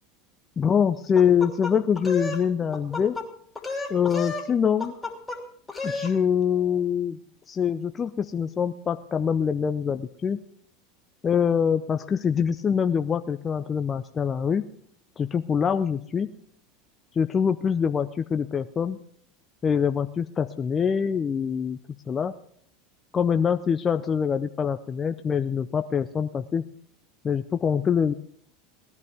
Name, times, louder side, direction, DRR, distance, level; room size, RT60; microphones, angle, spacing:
voice 1, 0.6-3.1 3.9-4.9 5.8-7.2 7.5-10.4 11.2-14.7 15.2-16.3 17.1-19.0 19.6-21.8 22.1-22.3 23.1-26.7 27.2-28.1, left 7 dB, 30° left, 9 dB, 0.5 m, -24 dB
sound 1, 1.2-2.4 2.7-3.3 3.6-4.5 4.8-5.4 5.7-6.1, left 3 dB, 10° left, 2.9 m, -32 dB
18.0 x 11.0 x 3.5 m, 0.63 s
hypercardioid pair, 95°, 0 cm